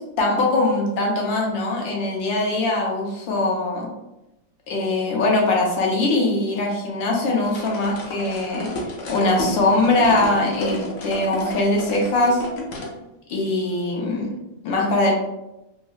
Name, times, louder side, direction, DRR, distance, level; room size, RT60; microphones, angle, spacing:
voice 1, 0.2-3.9 4.7-8.7 9.1-12.4 13.3-14.3 14.6-15.1, left 2 dB, 85° left, -1 dB, 1.5 m, -21 dB
sound 1, 7.4-12.9, left 2 dB, 65° left, 0.9 m, -31 dB
4.1 x 2.1 x 2.3 m, 0.92 s
omnidirectional pair, 2.0 m